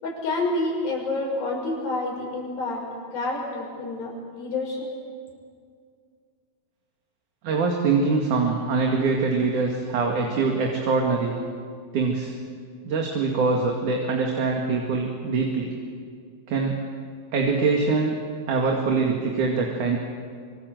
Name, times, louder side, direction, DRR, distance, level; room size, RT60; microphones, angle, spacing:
voice 1, 0.0-2.8 3.1-4.9, left 2 dB, 75° left, -1 dB, 7.7 m, -28 dB
voice 2, 7.4-11.4 11.9-12.3 12.8-15.7 16.5-16.7 17.3-18.2 18.5-20.0, right 4 dB, 60° right, 0 dB, 3.5 m, -23 dB
26.0 x 25.0 x 8.0 m, 2.2 s
omnidirectional pair, 4.2 m